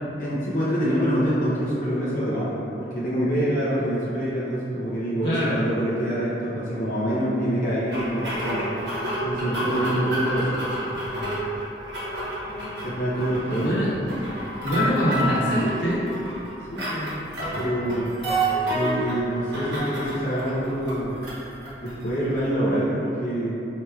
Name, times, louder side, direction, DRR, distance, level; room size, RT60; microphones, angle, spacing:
voice 1, 0.2-8.7 9.2-10.6 12.8-13.8 16.7-17.1 17.6-18.1 18.7-21.2 21.8-23.6, equal, 50° left, -9 dB, 0.6 m, -26 dB
voice 2, 5.2-5.6 13.3-13.9 14.2-14.3 14.6-16.0, equal, 85° left, -9 dB, 1.1 m, -24 dB
sound 1, 7.9-22.5, right 1 dB, 75° right, 0.9 m, -30 dB
4.4 x 2.9 x 2.3 m, 2.9 s
head